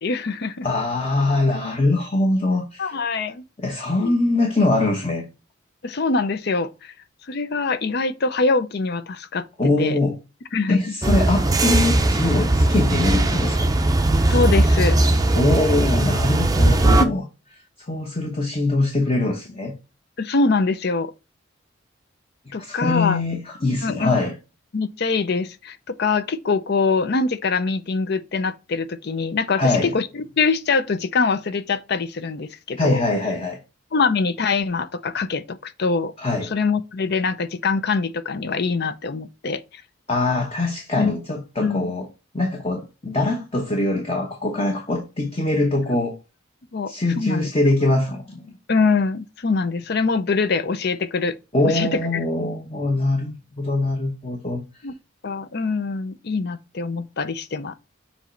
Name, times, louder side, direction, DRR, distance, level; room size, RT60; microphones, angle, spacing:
voice 1, 0.0-0.7 2.8-3.4 4.0-4.1 5.8-6.9 7.3-9.5 9.8-10.0 10.5-10.8 14.3-15.0 20.2-21.1 22.5-23.2 23.8-24.2 24.7-33.0 33.9-36.1 36.4-39.6 41.0-41.2 41.6-41.9 46.7-47.5 48.7-51.4 51.6-52.5 54.8-54.9 55.2-57.7, left 4 dB, 50° left, 0.5 m, -23 dB
voice 2, 0.6-3.0 3.6-5.3 9.6-10.2 10.7-13.7 15.3-17.2 17.9-19.7 22.6-24.3 29.6-29.9 32.8-33.6 36.2-36.5 40.1-42.1 42.3-46.2 46.9-48.6 51.5-54.6, left 2 dB, 30° left, 0.9 m, -23 dB
sound 1, 11.0-17.0, right 2 dB, 20° right, 0.5 m, -18 dB
7.3 x 3.0 x 4.3 m
head